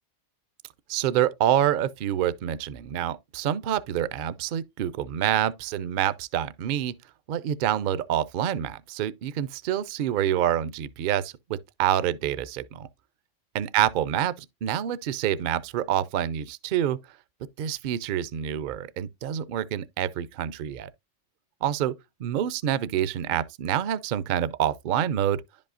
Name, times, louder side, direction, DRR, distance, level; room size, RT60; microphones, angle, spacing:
voice 1, 0.9-7.0 7.3-12.9 13.5-17.0 17.6-20.9 21.6-21.9 22.2-25.4, right 10 dB, 60° right, 0.5 m, -27 dB
10.5 x 5.4 x 2.4 m
omnidirectional pair, 1.2 m